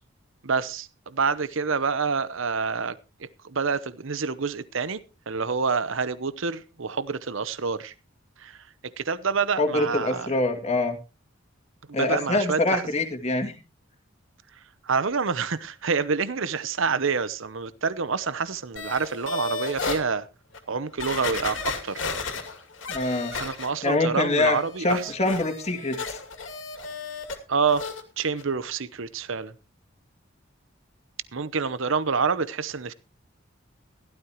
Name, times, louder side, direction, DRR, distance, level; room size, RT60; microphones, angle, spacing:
voice 1, 0.4-3.0 3.4-5.0 5.3-7.9 8.4-8.6 9.0-10.3 11.9-12.8 14.8-20.3 20.7-22.1 23.3-25.1 27.5-27.9 28.2-29.5 31.3-32.9, right 5 dB, 70° right, 0.8 m, -27 dB
voice 2, 9.6-11.0 11.9-13.5 22.9-23.3 23.8-26.2, left 2 dB, 30° left, 2.3 m, -25 dB
sound 1, 18.8-20.0 20.5-20.6 21.0-24.0 24.3-27.4 27.7-28.0 28.4-28.5, left 4 dB, 65° left, 2.6 m, -34 dB
16.0 x 12.5 x 3.0 m
head